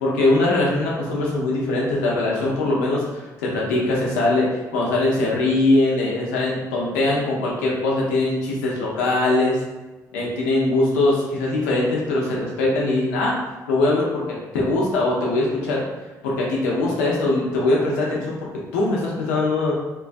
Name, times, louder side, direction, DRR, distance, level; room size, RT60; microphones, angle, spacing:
voice 1, 0.0-9.6 10.1-13.4 13.7-15.8 16.2-19.7, left 2 dB, 90° left, -3 dB, 0.7 m, -21 dB
3.0 x 2.3 x 2.5 m, 1.1 s
hypercardioid pair, 50°, 9 cm